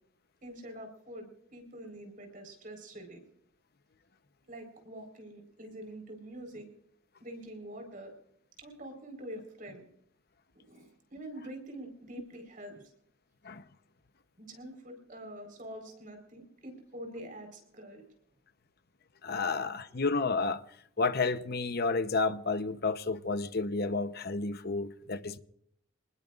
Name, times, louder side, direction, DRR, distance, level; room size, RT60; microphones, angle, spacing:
voice 1, 0.4-3.2 4.5-6.7 7.2-8.1 8.6-9.9 10.5-12.9 14.4-18.0, right 1 dB, 40° right, 4.5 m, -45 dB
voice 2, 19.2-20.6 21.0-25.4, left 3 dB, 50° left, 0.9 m, -31 dB
26.5 x 20.5 x 2.5 m
head